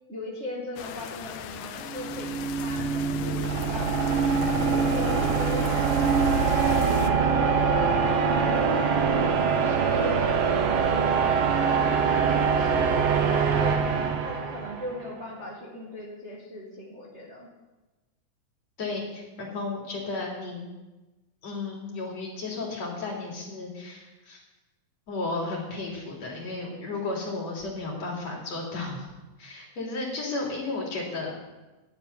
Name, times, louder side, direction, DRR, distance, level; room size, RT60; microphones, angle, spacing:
voice 1, 0.1-4.2 4.6-8.6 9.0-11.2 11.5-13.9 14.2-17.5, left 1 dB, 25° right, -4 dB, 2.3 m, -39 dB
sound 1, 0.8-7.1, left 10 dB, 80° left, 1.5 m, -37 dB
sound 2, 1.9-15.0, right 5 dB, 80° right, 2.9 m, -24 dB
voice 2, 18.8-20.6 21.4-24.4 25.1-29.1 29.4-31.3, left 3 dB, 55° left, -2 dB, 4.5 m, -33 dB
11.0 x 9.0 x 9.6 m, 1.1 s
omnidirectional pair, 3.7 m